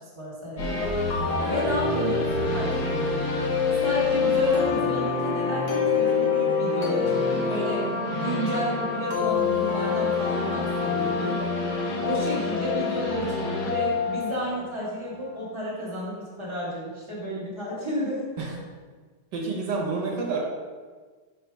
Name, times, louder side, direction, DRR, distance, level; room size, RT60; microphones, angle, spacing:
voice 1, 0.1-3.2 3.8-11.4 12.0-18.3, equal, 15° right, -6 dB, 1.6 m, -32 dB
sound 1, 0.6-15.4, left 4 dB, 70° left, 1.7 m, -26 dB
voice 2, 19.3-20.4, right 4 dB, 80° right, -1 dB, 1.6 m, -28 dB
4.6 x 4.2 x 5.3 m, 1.4 s
omnidirectional pair, 1.8 m